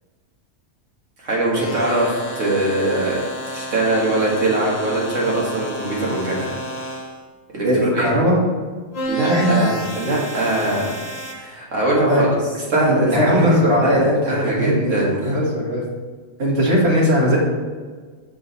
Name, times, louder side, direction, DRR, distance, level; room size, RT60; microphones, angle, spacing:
voice 1, 1.2-6.5 7.5-7.7 7.9-8.1 9.1-12.3 12.7-14.0 14.3-15.4, right 2 dB, 65° right, -4 dB, 2.1 m, -22 dB
sound 1, 1.5-7.2 8.9-11.3, right 1 dB, 30° left, 1.1 m, -31 dB
voice 2, 7.6-8.4 9.2-9.5 12.1-12.2 12.7-15.8 16.4-17.4, equal, 50° right, -4 dB, 1.9 m, -18 dB
7.0 x 5.2 x 4.0 m, 1.5 s
omnidirectional pair, 1.4 m